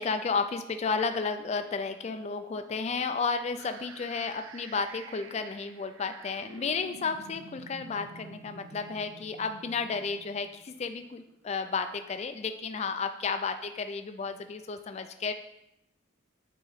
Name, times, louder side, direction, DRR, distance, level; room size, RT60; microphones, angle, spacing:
voice 1, 0.0-15.3, left 5 dB, 30° left, 8 dB, 0.3 m, -32 dB
sound 1, 3.6-11.5, right 4 dB, 80° right, 0.5 m, -50 dB
9.2 x 3.8 x 4.0 m, 0.88 s
head